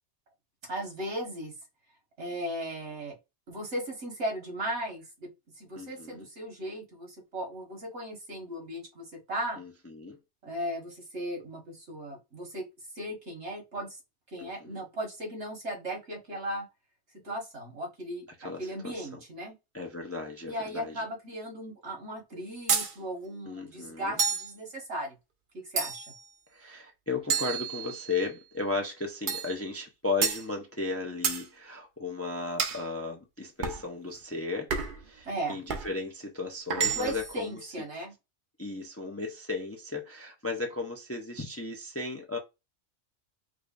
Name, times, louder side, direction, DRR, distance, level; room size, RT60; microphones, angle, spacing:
voice 1, 0.6-1.5 2.2-3.2 3.5-9.6 10.4-12.7 13.0-14.0 14.3-16.7 17.2-19.6 20.5-25.2 25.5-26.1 35.3-35.6 37.0-38.1, right 1 dB, 70° right, 1.8 m, -37 dB
voice 2, 5.8-6.3 9.6-10.2 14.4-14.8 18.4-18.9 19.7-21.0 23.5-24.2 26.5-34.7 35.0-37.7 38.6-42.4, left 3 dB, 20° left, 0.4 m, -35 dB
sound 1, 22.7-22.9 24.2-24.5 25.8-26.2 27.3-28.2 29.3-29.5 30.2-30.4 31.2-31.4 32.6-32.8 33.6-33.8 34.7-35.0 35.7-35.9 36.7-37.3, right 6 dB, 50° right, 0.7 m, -29 dB
4.8 x 2.3 x 2.5 m
omnidirectional pair, 1.2 m